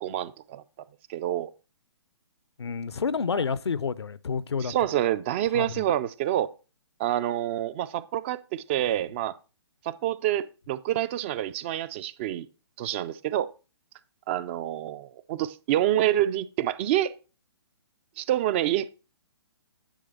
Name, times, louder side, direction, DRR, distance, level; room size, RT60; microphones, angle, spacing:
voice 1, 0.0-0.6 1.1-1.5 3.3-3.4 4.6-6.5 7.0-9.4 9.8-12.5 12.8-13.5 14.3-17.1 18.2-18.9, right 12 dB, 30° right, 0.3 m, -27 dB
voice 2, 2.6-4.7 5.5-5.8, left 5 dB, 80° left, 0.6 m, -29 dB
10.0 x 3.4 x 5.3 m
figure-of-eight pair, 135°, 14 cm